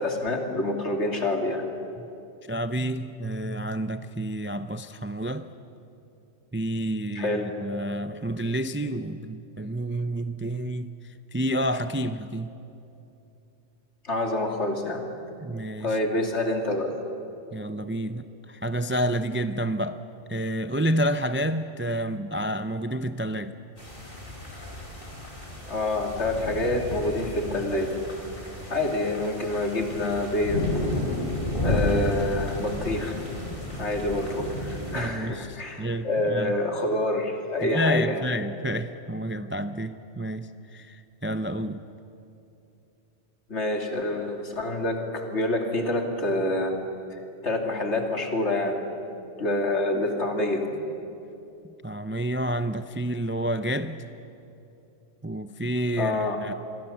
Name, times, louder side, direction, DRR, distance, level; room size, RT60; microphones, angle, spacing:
voice 1, 0.0-1.6 7.1-7.5 14.0-15.1 15.8-16.9 25.7-27.9 28.7-30.7 31.6-33.2 33.8-38.3 43.5-46.7 47.4-48.8 49.4-50.8 56.0-56.4, left 1 dB, 65° left, 3 dB, 2.8 m, -27 dB
voice 2, 2.5-5.5 6.5-12.5 15.4-16.0 17.5-20.0 20.3-23.5 34.9-36.6 37.6-41.9 51.8-54.1 55.2-56.5, right 1 dB, 15° right, 10 dB, 0.4 m, -29 dB
sound 1, 23.8-35.0, left 1 dB, 45° left, 4.8 m, -32 dB
27.5 x 22.0 x 7.2 m, 2.8 s
omnidirectional pair, 1.2 m